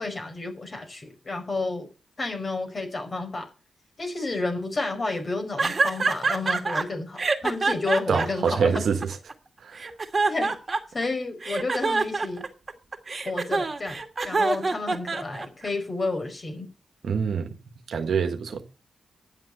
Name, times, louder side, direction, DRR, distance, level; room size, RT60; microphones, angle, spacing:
voice 1, 0.0-1.9 2.2-3.5 4.0-8.8 10.3-10.5 10.9-12.5 13.2-16.7, left 3 dB, 45° left, 5.0 m, -30 dB
sound 1, 5.6-6.8 7.2-9.3 9.8-11.0 11.4-15.7, right 3 dB, 45° right, 2.4 m, -25 dB
voice 2, 8.1-9.0 9.6-9.9 17.0-17.5 17.9-18.6, right 6 dB, 75° right, 1.4 m, -25 dB
11.0 x 7.5 x 6.8 m
supercardioid pair, 45°, 0 cm